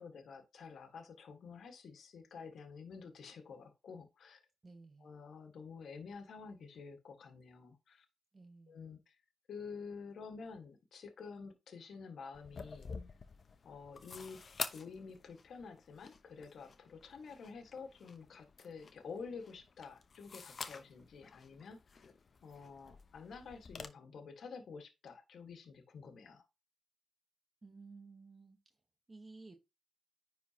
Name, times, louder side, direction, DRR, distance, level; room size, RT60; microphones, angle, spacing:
voice 1, 0.0-4.4 5.0-8.1 8.7-9.2 9.5-12.9 13.6-14.4 14.7-22.1 22.4-26.5, left 5 dB, 65° left, 1.6 m, -50 dB
voice 2, 4.6-5.1 8.3-8.8 27.6-28.6 29.1-29.6, right 3 dB, 30° right, 1.1 m, -55 dB
sound 1, 12.3-23.9, left 5 dB, 50° left, 0.8 m, -49 dB
9.8 x 4.3 x 2.9 m
cardioid pair, 70°, 0 cm